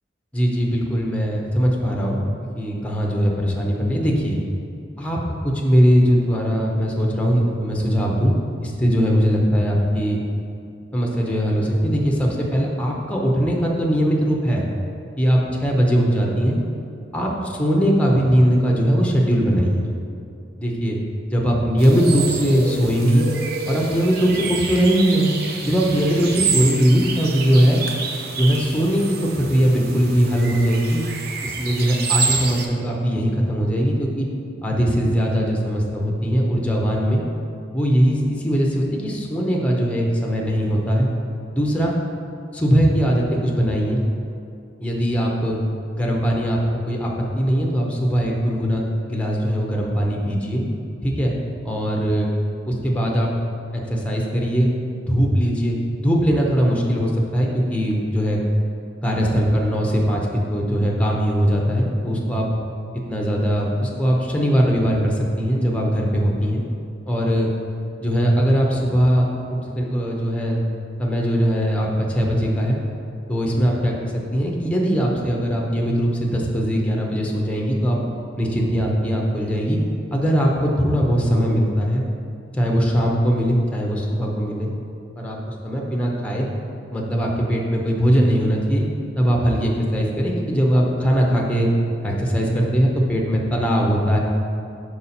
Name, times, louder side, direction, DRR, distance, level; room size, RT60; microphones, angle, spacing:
voice 1, 0.3-2.2 2.6-4.4 5.0-8.3 8.6-10.2 10.9-14.6 15.2-16.6 17.1-19.9 20.6-21.0 21.3-23.3 23.7-25.3 25.6-27.8 28.3-31.0 31.4-34.3 34.6-37.2 37.7-41.1 41.5-41.9 42.5-44.0 44.8-45.6 45.9-50.7 51.0-51.3 51.6-52.3 52.6-53.3 53.7-54.7 55.1-58.4 59.0-60.2 60.5-62.5 63.1-66.6 67.1-67.5 68.0-70.6 71.0-72.8 73.3-78.1 78.4-79.8 80.1-82.0 82.5-84.7 85.2-86.5 86.9-88.8 89.2-91.7 92.0-94.2, equal, 5° left, -2 dB, 0.7 m, -20 dB
sound 1, 21.8-32.7, right 4 dB, 55° right, 0.6 m, -28 dB
5.5 x 4.7 x 4.2 m, 2.5 s
head